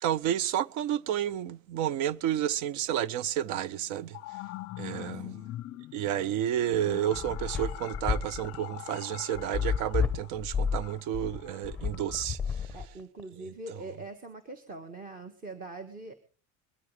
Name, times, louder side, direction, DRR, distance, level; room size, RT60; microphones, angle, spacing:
voice 1, 0.0-4.2 4.8-5.3 5.9-12.4, right 11 dB, 50° right, 0.7 m, -30 dB
sound 1, 3.7-12.2, left 17 dB, 40° left, 0.7 m, -44 dB
voice 2, 4.9-5.4 12.7-16.1, right 2 dB, 20° right, 1.5 m, -43 dB
sound 2, 6.7-13.2, left 6 dB, 5° left, 0.9 m, -31 dB
22.0 x 13.5 x 3.3 m
cardioid pair, 145°, 38 cm